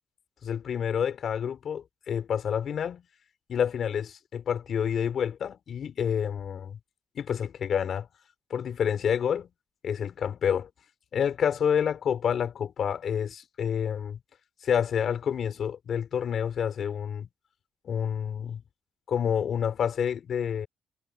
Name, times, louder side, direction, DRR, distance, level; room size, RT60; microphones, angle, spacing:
voice 1, 0.4-3.0 3.5-6.8 7.1-8.1 8.5-9.5 9.8-10.7 11.1-14.2 14.6-17.3 17.9-18.6 19.1-20.7, left 8 dB, 60° left, 4.1 m, -28 dB
cardioid pair, 90°, 0 cm